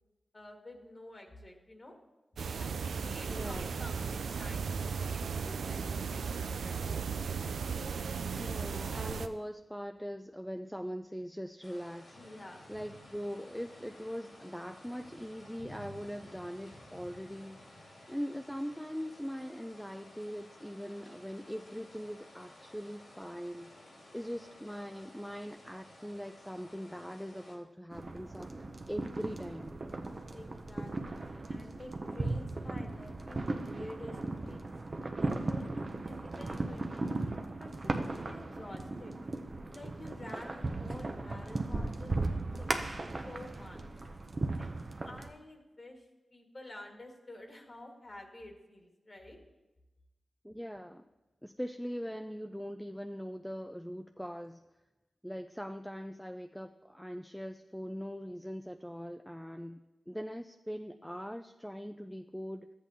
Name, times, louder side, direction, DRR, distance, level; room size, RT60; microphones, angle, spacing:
voice 1, 0.3-2.0 2.5-2.7 3.0-6.9 12.2-12.6 30.3-34.6 35.2-39.1 39.7-43.8 44.6-49.4, left 1 dB, 45° left, 2 dB, 1.6 m, -50 dB
sound 1, 2.4-9.3, right 5 dB, 85° right, 0.3 m, -36 dB
voice 2, 3.3-3.7 8.4-12.3 12.7-23.7 24.1-29.8 50.4-51.1 51.4-54.6 55.2-62.7, equal, ahead, 6 dB, 0.4 m, -41 dB
sound 2, 11.6-27.6, left 1 dB, 85° left, 2.9 m, -54 dB
sound 3, 27.9-45.3, right 2 dB, 50° right, 0.7 m, -37 dB
12.5 x 8.2 x 2.8 m, 1.1 s
cardioid pair, 45°, 0 cm